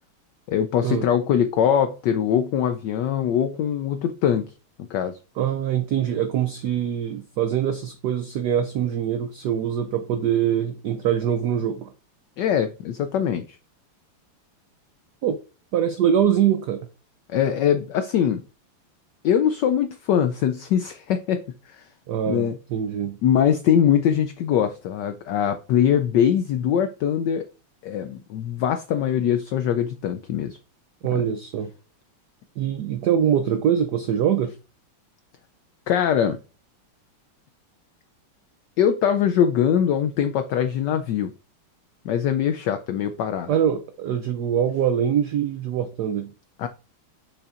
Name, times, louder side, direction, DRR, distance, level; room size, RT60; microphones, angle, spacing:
voice 1, 0.5-4.5 4.8-5.1 12.4-13.6 17.3-18.4 19.2-21.9 22.3-22.6 23.2-27.4 27.8-30.6 35.9-36.4 38.8-41.3 42.0-43.5 46.6-46.7, left 9 dB, 85° left, 0.9 m, -22 dB
voice 2, 5.4-11.9 15.2-15.4 15.7-16.9 22.1-23.2 31.0-31.7 32.6-34.5 43.5-46.3, right 9 dB, 85° right, 0.9 m, -23 dB
6.9 x 5.6 x 2.5 m
omnidirectional pair, 2.4 m